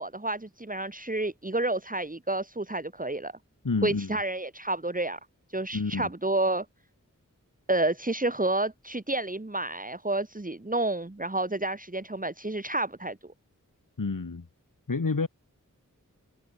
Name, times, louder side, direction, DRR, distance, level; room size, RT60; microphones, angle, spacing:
voice 1, 0.0-3.3 3.8-5.2 5.5-6.7 7.7-13.2, right 2 dB, 25° right, 2.4 m, -30 dB
voice 2, 3.6-4.2 5.7-6.1 14.0-14.5 14.9-15.3, left 4 dB, 75° left, 4.7 m, -29 dB
cardioid pair, 40°, 33 cm